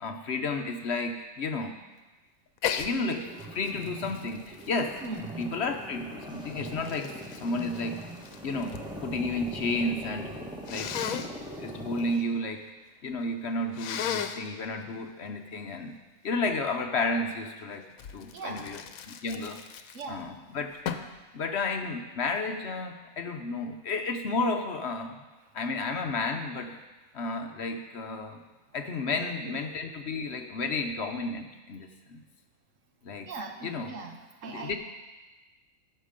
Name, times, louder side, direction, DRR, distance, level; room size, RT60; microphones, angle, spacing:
voice 1, 0.0-1.8 2.8-5.0 5.4-8.1 8.4-10.3 10.7-11.3 11.6-12.6 13.0-16.0 16.2-18.8 19.1-19.6 20.1-20.7 21.3-25.2 25.5-26.8 27.1-28.4 28.7-32.2 33.0-33.3 33.6-33.9 34.5-34.8, left 3 dB, 55° left, 6 dB, 0.9 m, -32 dB
Sneeze, 2.6-2.9 3.4-5.7 6.4-8.9 9.2-9.8 10.7-11.3 13.7-14.5 18.0-20.3 20.8-21.2, left 8 dB, 80° left, 1.1 m, -35 dB
sound 1, 2.9-12.1, right 1 dB, 5° right, 1.3 m, -41 dB
voice 2, 5.0-5.4 12.1-12.2 18.3-18.8 19.9-20.3 29.1-29.8 30.2-30.3 33.3-34.8, right 3 dB, 65° right, 4 dB, 1.4 m, -40 dB
15.0 x 6.6 x 5.1 m, 1.2 s
omnidirectional pair, 1.5 m